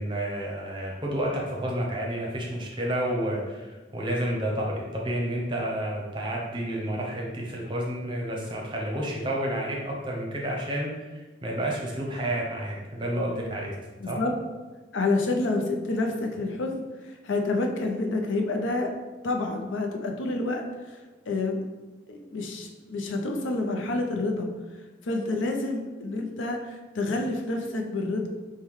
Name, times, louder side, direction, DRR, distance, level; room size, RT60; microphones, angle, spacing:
voice 1, 0.0-13.7 14.1-14.2, right 1 dB, 25° right, -2 dB, 0.7 m, -30 dB
voice 2, 14.0-14.3 14.9-18.9 19.2-21.7 22.1-24.5 25.0-28.3, left 2 dB, 90° left, 2 dB, 0.5 m, -28 dB
4.5 x 2.2 x 3.6 m, 1.2 s
head